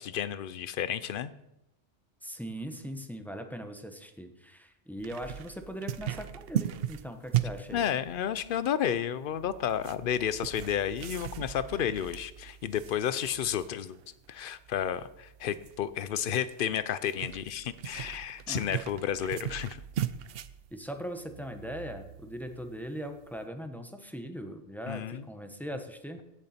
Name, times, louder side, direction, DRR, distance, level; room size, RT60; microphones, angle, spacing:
voice 1, 0.0-1.3 7.7-14.0 14.3-19.8 24.9-25.3, left 9 dB, 60° left, 15 dB, 0.7 m, -31 dB
voice 2, 2.2-7.9 18.5-18.6 20.7-26.2, equal, ahead, 6 dB, 0.8 m, -40 dB
sound 1, 5.0-23.4, right 11 dB, 65° right, 0.7 m, -39 dB
16.5 x 6.8 x 4.3 m, 0.87 s
omnidirectional pair, 1.2 m